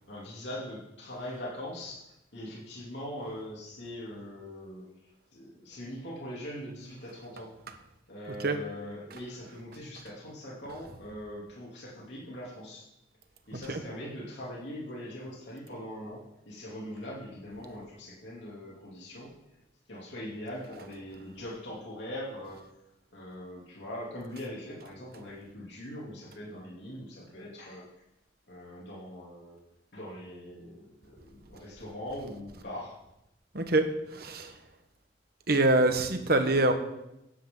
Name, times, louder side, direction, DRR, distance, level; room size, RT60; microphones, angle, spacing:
voice 1, 0.1-2.0 2.3-4.8 5.3-7.5 8.1-12.8 13.5-19.3 19.9-22.6 23.1-27.9 28.5-29.6 29.9-33.0, left 1 dB, 65° left, -4 dB, 3.2 m, -41 dB
voice 2, 33.5-34.6 35.5-36.7, right 2 dB, 55° right, 7 dB, 1.3 m, -25 dB
16.0 x 9.9 x 4.0 m, 0.87 s
head